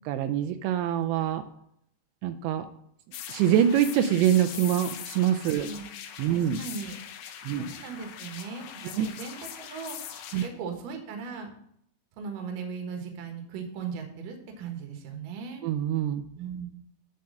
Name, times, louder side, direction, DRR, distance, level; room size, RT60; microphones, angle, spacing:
voice 1, 0.1-1.4 2.2-2.7 3.3-5.7 6.2-6.6 7.5-7.7 9.0-9.1 10.3-10.4 15.6-16.2, right 10 dB, 85° right, 9 dB, 2.9 m, -25 dB
sound 1, 3.1-10.5, left 9 dB, 80° left, 2.1 m, -41 dB
voice 2, 5.5-5.9 6.3-7.0 7.6-11.5 12.2-15.7 16.4-16.7, right 5 dB, 60° right, 4 dB, 2.5 m, -38 dB
9.3 x 4.5 x 6.3 m, 0.71 s
omnidirectional pair, 5.1 m